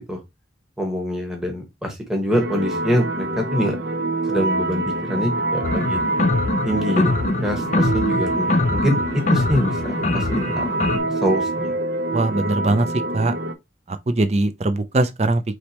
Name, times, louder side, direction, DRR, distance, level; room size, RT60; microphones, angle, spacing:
voice 1, 0.8-3.8 4.3-6.0 6.6-7.1 7.4-10.7 11.2-11.7, equal, 5° right, 1.2 m, -24 dB
sound 1, 2.3-13.5, right 2 dB, 65° right, 0.8 m, -25 dB
sound 2, 5.6-11.0, left 2 dB, 40° left, 0.5 m, -23 dB
voice 2, 12.1-12.9 13.1-13.4 13.9-15.6, right 2 dB, 35° right, 0.5 m, -21 dB
4.8 x 3.2 x 2.9 m
head